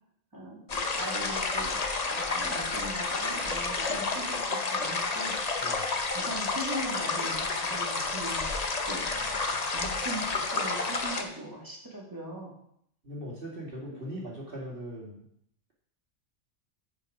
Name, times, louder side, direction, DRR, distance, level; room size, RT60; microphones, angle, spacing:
voice 1, 0.3-5.4 6.1-8.4 8.8-9.1 9.7-12.5, right 1 dB, 15° right, -4 dB, 2.3 m, -40 dB
sound 1, 0.7-11.2, left 3 dB, 35° left, 0.8 m, -30 dB
voice 2, 5.6-6.0 9.0-9.6 13.0-15.2, equal, 50° right, -3 dB, 2.1 m, -41 dB
9.5 x 5.2 x 4.9 m, 0.70 s
omnidirectional pair, 1.2 m